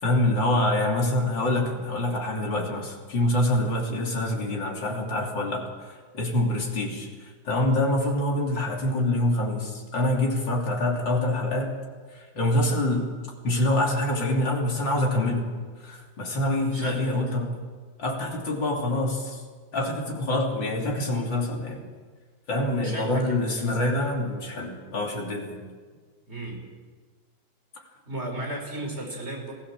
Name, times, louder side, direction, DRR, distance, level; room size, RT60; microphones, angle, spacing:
voice 1, 0.0-5.7 6.1-7.1 7.5-11.8 12.4-13.1 13.4-15.5 15.8-17.5 18.0-19.4 19.7-21.9 22.5-25.6, left 1 dB, 65° left, 0 dB, 3.8 m, -25 dB
voice 2, 16.7-17.2 22.8-23.8 26.3-26.6 28.1-29.5, right 1 dB, 30° right, 1 dB, 4.9 m, -35 dB
22.0 x 16.0 x 7.4 m, 1.5 s
omnidirectional pair, 2.2 m